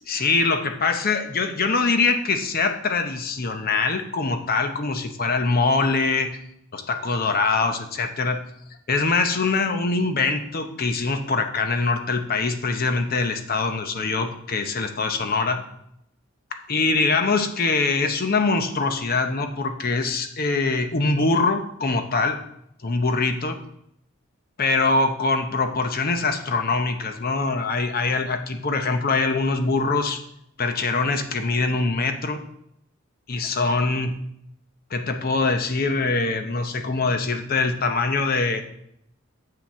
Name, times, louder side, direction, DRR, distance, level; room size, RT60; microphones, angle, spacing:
voice 1, 0.1-6.4 6.7-8.4 8.9-15.6 16.5-22.4 22.8-23.6 24.6-30.2 30.6-32.4 33.3-34.2 34.9-38.6, left 3 dB, 45° left, 7 dB, 0.7 m, -23 dB
7.1 x 6.0 x 4.3 m, 0.75 s
head